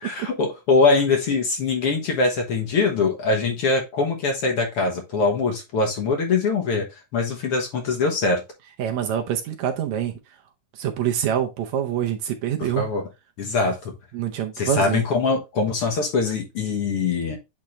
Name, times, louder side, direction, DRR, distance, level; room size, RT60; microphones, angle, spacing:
voice 1, 0.0-6.9 7.1-8.4 12.6-13.0 13.4-13.9 14.6-17.4, left 4 dB, 55° left, 1.9 m, -22 dB
voice 2, 8.8-10.1 10.7-12.9 14.1-15.0, right 10 dB, 75° right, 1.9 m, -25 dB
8.7 x 3.7 x 3.1 m
omnidirectional pair, 3.6 m